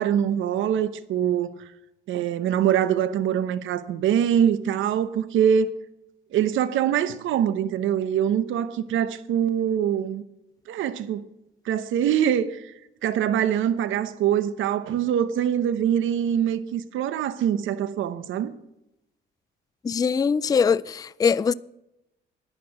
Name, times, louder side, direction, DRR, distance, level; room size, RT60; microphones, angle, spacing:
voice 1, 0.0-1.6 2.1-5.7 6.3-10.2 10.7-11.2 11.6-12.7 13.0-18.5, right 9 dB, 80° right, 0.9 m, -24 dB
voice 2, 19.8-21.5, left 6 dB, 20° left, 0.3 m, -22 dB
10.5 x 10.0 x 5.9 m
cardioid pair, 90°, 20 cm